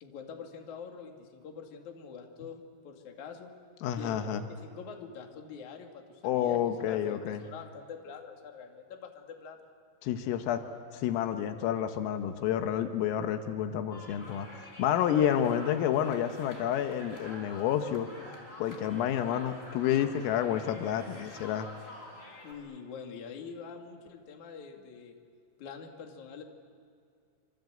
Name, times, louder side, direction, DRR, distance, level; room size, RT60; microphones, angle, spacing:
voice 1, 0.0-3.5 4.0-9.6 22.4-25.2 25.6-26.4, left 6 dB, 45° left, 2 dB, 3.1 m, -45 dB
voice 2, 3.8-4.4 6.2-7.4 10.0-10.6 10.9-18.1 18.6-21.7, left 10 dB, 85° left, 7 dB, 4.0 m, -29 dB
sound 1, 13.9-22.5, left 1 dB, 15° left, 4.5 m, -48 dB
27.0 x 27.0 x 8.0 m, 2.4 s
omnidirectional pair, 5.8 m